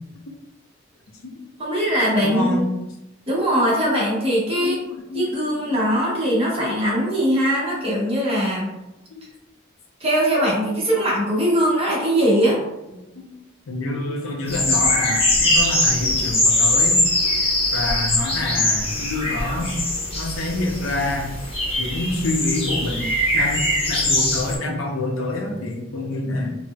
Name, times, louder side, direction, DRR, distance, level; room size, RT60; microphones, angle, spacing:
voice 1, 1.6-2.7 3.3-4.8 5.1-8.7 10.0-12.6, equal, 30° right, -4 dB, 0.8 m, -21 dB
voice 2, 2.2-2.7 3.7-3.8 4.5-6.4 7.7-7.8 8.3-8.4 9.1-9.2 13.2-13.3 13.7-17.0 17.7-19.7 20.1-21.3 21.8-26.5, left 2 dB, 85° left, 1 dB, 0.6 m, -27 dB
sound 1, 14.5-24.6, left 1 dB, 30° left, 0.8 m, -21 dB
4.0 x 2.0 x 2.3 m, 0.94 s
head